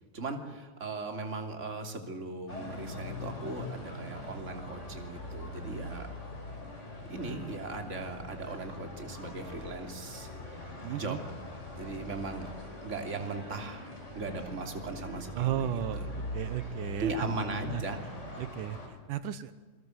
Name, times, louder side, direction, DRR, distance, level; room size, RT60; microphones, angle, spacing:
voice 1, 0.1-6.1 7.1-11.2 11.8-12.5 12.8-13.9 14.1-15.7 15.9-16.1 17.0-18.0 18.3-18.4, right 3 dB, 20° right, 5 dB, 3.0 m, -38 dB
sound 1, 2.5-18.9, left 1 dB, 20° left, 5.7 m, -42 dB
voice 2, 10.8-11.2 15.3-16.1 16.3-17.3 17.6-17.8 18.4-19.5, right 11 dB, 80° right, 13 dB, 2.5 m, -34 dB
28.0 x 21.0 x 7.9 m, 1.4 s
omnidirectional pair, 3.7 m